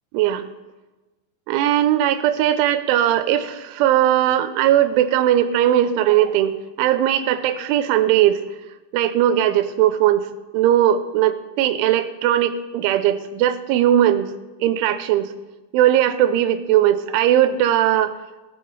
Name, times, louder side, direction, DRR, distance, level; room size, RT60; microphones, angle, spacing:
voice 1, 0.1-0.5 1.5-8.4 8.9-10.3 10.5-14.3 14.6-15.3 15.7-18.1, right 11 dB, 90° right, 11 dB, 3.2 m, -19 dB
17.5 x 7.0 x 5.4 m, 1.1 s
omnidirectional pair, 5.4 m